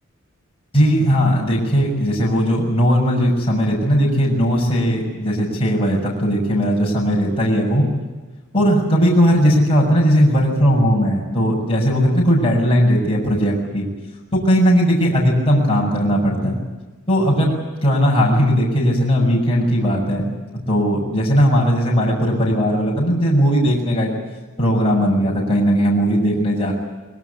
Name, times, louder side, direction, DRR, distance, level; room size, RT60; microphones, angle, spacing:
voice 1, 0.7-7.9 8.5-13.9 14.3-16.6 17.1-17.5 17.8-20.2 20.7-24.1 24.6-26.7, equal, 25° left, -3 dB, 6.4 m, -17 dB
24.0 x 22.0 x 8.4 m, 1.2 s
head